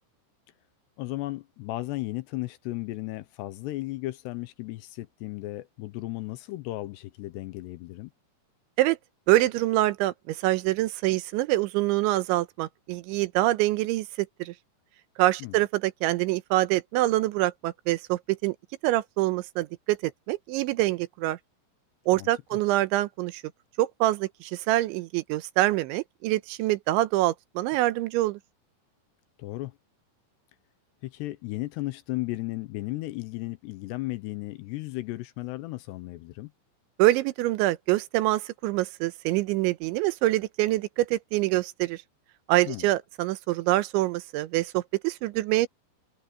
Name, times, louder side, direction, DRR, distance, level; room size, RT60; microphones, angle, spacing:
voice 1, 1.0-8.1 15.4-15.6 22.1-22.3 29.4-29.8 31.0-36.5 42.7-42.9, left 18 dB, 80° left, 2.6 m, -35 dB
voice 2, 9.3-14.5 15.2-18.6 18.8-21.4 22.1-23.4 23.8-28.4 37.0-42.0 42.5-45.7, right 17 dB, 85° right, 3.2 m, -25 dB
omnidirectional pair, 5.3 m